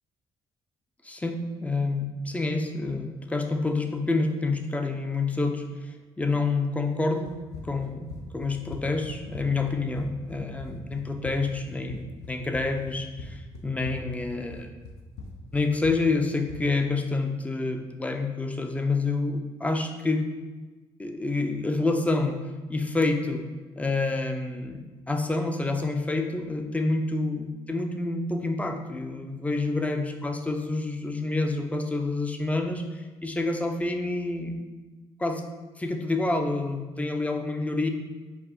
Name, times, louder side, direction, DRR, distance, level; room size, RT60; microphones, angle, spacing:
voice 1, 1.0-7.3 7.6-14.7 15.5-20.3 21.0-22.4 22.7-23.4 23.8-34.7 35.2-35.4 35.8-37.9, left 3 dB, 10° left, 4 dB, 0.5 m, -28 dB
Run, 7.2-16.7, left 3 dB, 80° left, 0.5 m, -42 dB
4.7 x 2.5 x 3.8 m, 1.2 s
cardioid pair, 90°, 11 cm